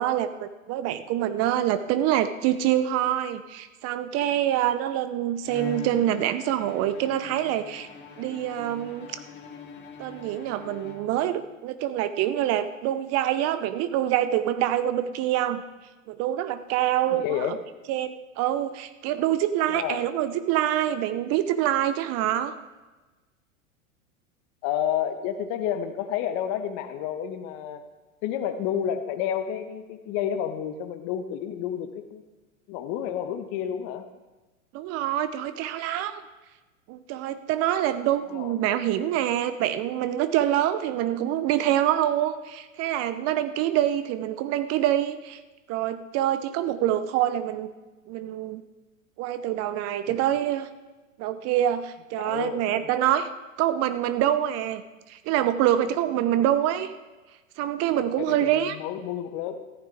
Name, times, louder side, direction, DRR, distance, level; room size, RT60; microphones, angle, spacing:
voice 1, 0.0-7.9 8.2-9.2 10.0-15.6 16.1-17.6 17.9-22.5 34.7-36.2 36.9-45.4 45.7-47.7 48.1-48.6 49.2-50.7 51.2-53.3 53.6-54.8 55.1-56.9 57.6-58.8, right 12 dB, 40° right, 12 dB, 0.7 m, -25 dB
Bowed string instrument, 5.4-11.5, left 3 dB, 25° left, 2.4 m, -43 dB
voice 2, 17.1-17.6 19.7-20.0 24.6-27.8 28.2-32.2 32.7-34.1 38.3-38.5 52.2-52.9 57.9-59.6, left 9 dB, 45° left, 9 dB, 1.3 m, -30 dB
15.0 x 13.0 x 3.5 m, 1.2 s
hypercardioid pair, 100°, 40 cm